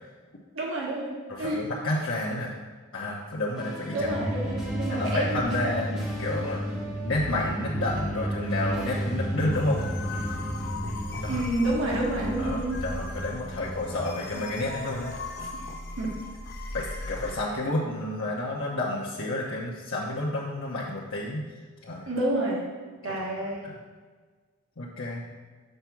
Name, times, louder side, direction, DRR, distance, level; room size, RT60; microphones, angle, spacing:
voice 1, 0.5-1.1 1.4-1.6 3.9-5.4 11.3-12.8 16.0-16.2 22.1-22.6 23.0-23.6, right 1 dB, 80° right, -3 dB, 1.5 m, -29 dB
voice 2, 1.3-2.5 2.9-4.1 4.9-6.6 7.0-9.8 11.2-11.4 12.4-15.1 15.4-15.5 16.7-21.4 21.8-22.1 23.1-23.2 23.6-23.8 24.8-25.2, left 2 dB, 75° left, -5 dB, 0.9 m, -30 dB
sound 1, 3.6-11.0, equal, ahead, 1.3 m, -40 dB
sound 2, 4.0-14.3, right 1 dB, 30° right, 1.1 m, -33 dB
sound 3, 9.5-17.3, left 2 dB, 50° left, 0.7 m, -38 dB
6.6 x 4.6 x 5.9 m, 1.4 s
head